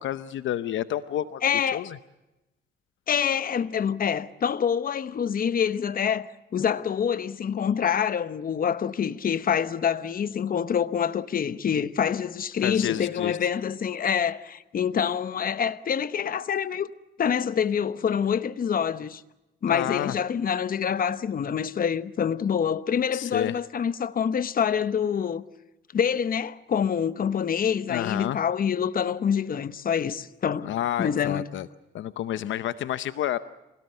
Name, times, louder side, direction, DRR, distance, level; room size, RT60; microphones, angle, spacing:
voice 1, 0.0-1.4 1.7-2.0 12.6-13.4 19.7-20.1 23.1-23.5 27.9-28.4 30.6-31.7 31.9-33.4, left 12 dB, 75° left, 0.8 m, -29 dB
voice 2, 1.4-1.9 3.1-16.9 17.2-19.2 19.6-25.4 25.9-30.7 31.0-31.5, left 8 dB, 45° left, 1.0 m, -26 dB
26.0 x 17.5 x 7.9 m
cardioid pair, 90°, 20 cm